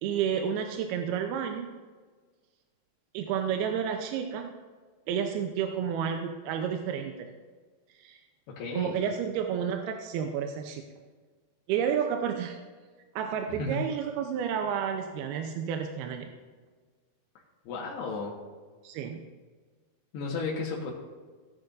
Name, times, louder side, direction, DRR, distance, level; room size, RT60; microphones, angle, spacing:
voice 1, 0.0-1.7 3.1-4.5 5.1-7.3 8.0-8.2 8.7-10.8 11.7-12.6 13.2-16.3 18.8-19.2, right 8 dB, 85° right, 4 dB, 2.6 m, -31 dB
voice 2, 8.6-9.0 13.5-13.8 17.7-18.3 20.1-20.9, left 3 dB, 90° left, -4 dB, 3.5 m, -33 dB
17.0 x 9.2 x 2.6 m, 1.4 s
omnidirectional pair, 4.6 m